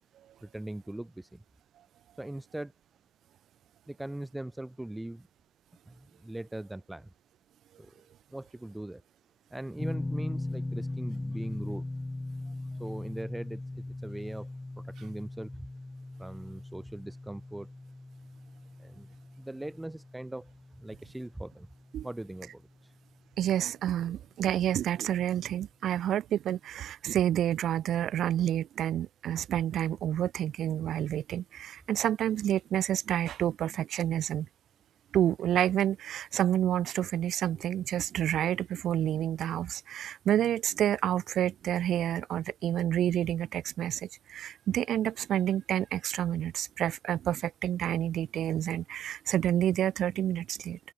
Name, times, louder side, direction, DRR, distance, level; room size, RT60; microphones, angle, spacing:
voice 1, 0.4-1.4 2.2-2.7 3.9-5.3 5.9-7.1 7.8-8.1 8.3-9.0 9.5-11.9 12.8-14.5 14.8-15.7 16.2-17.7 18.8-19.1 19.4-20.5 20.8-21.7 22.0-22.9, right 1 dB, 10° right, 3.7 m, -40 dB
sound 1, 9.8-22.7, left 2 dB, 15° left, 2.9 m, -39 dB
voice 2, 23.4-34.5 35.1-50.8, right 11 dB, 75° right, 1.7 m, -29 dB
open air
cardioid pair, 85°, 0 cm